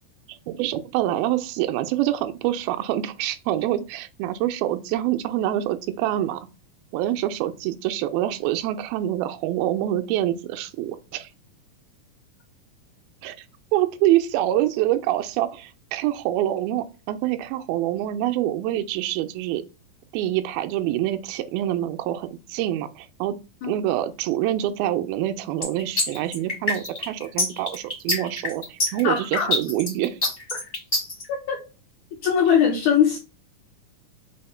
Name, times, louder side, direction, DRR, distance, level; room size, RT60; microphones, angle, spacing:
voice 1, 0.3-6.5 6.9-11.3 13.2-13.5 13.7-19.6 20.1-23.4 23.6-30.2, right 13 dB, 90° right, 2.4 m, -26 dB
sound 1, 25.6-31.2, left 2 dB, 60° left, 0.6 m, -25 dB
voice 2, 29.0-29.5 31.3-31.6 32.2-33.2, left 8 dB, 85° left, 1.7 m, -21 dB
5.9 x 2.1 x 4.2 m
omnidirectional pair, 4.1 m